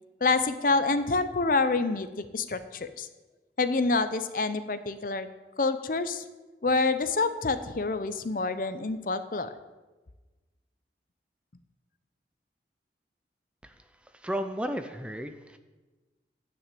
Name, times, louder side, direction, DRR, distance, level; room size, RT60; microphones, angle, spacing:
voice 1, 0.2-3.1 3.6-5.3 5.6-6.2 6.6-9.5, left 3 dB, 50° left, 11 dB, 0.6 m, -27 dB
voice 2, 14.2-15.6, equal, 5° right, 7 dB, 0.5 m, -33 dB
10.0 x 6.2 x 7.7 m, 1.2 s
head